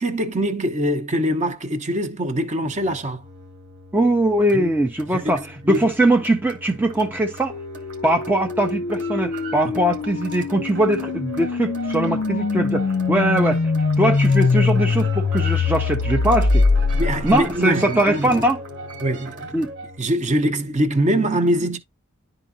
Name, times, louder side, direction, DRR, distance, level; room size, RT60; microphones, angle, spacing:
voice 1, 0.0-3.2 4.5-4.7 5.1-5.4 5.6-5.8 9.6-9.8 17.0-18.4 19.0-19.3 20.0-21.8, right 1 dB, 35° right, 0.9 m, -23 dB
sound 1, 2.6-20.0, right 1 dB, 55° right, 1.9 m, -37 dB
voice 2, 3.9-7.5 8.0-13.6 14.0-16.6 17.2-18.6 19.5-19.7, right 1 dB, 10° right, 0.5 m, -21 dB
sound 2, 7.5-17.6, left 4 dB, 55° left, 0.5 m, -22 dB
11.0 x 3.9 x 2.6 m
head